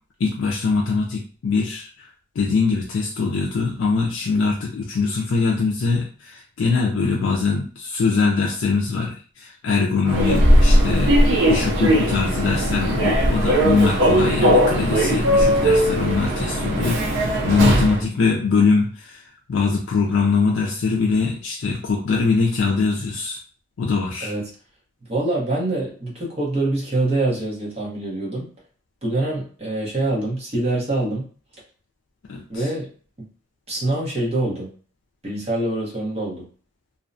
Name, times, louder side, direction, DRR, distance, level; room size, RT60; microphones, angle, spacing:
voice 1, 0.2-2.1 2.4-11.1 11.5-23.4 23.8-24.3 32.3-32.7, left 4 dB, 70° left, -1 dB, 0.4 m, -22 dB
Human voice / Subway metro underground, 10.1-18.0, equal, 60° right, 0.5 m, -18 dB
voice 2, 25.1-28.5 29.0-31.2 32.5-32.9 33.7-34.7 35.2-36.5, right 2 dB, 30° right, -4 dB, 0.9 m, -25 dB
2.6 x 2.1 x 2.5 m, 0.41 s
head